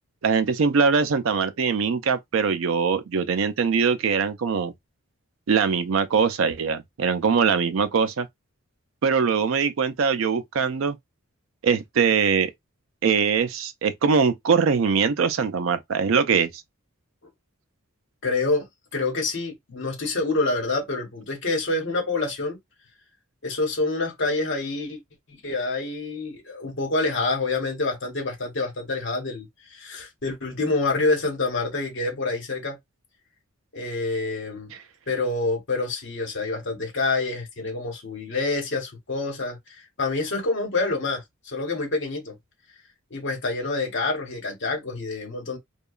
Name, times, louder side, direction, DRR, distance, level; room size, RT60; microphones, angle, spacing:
voice 1, 0.2-4.7 5.5-8.3 9.0-11.0 11.6-12.5 13.0-16.5, right 5 dB, 65° right, 0.4 m, -22 dB
voice 2, 18.2-18.7 18.9-22.6 23.4-25.0 25.3-32.8 33.7-34.7 35.1-42.3 43.1-45.6, left 3 dB, 55° left, 1.0 m, -27 dB
2.8 x 2.2 x 2.3 m
head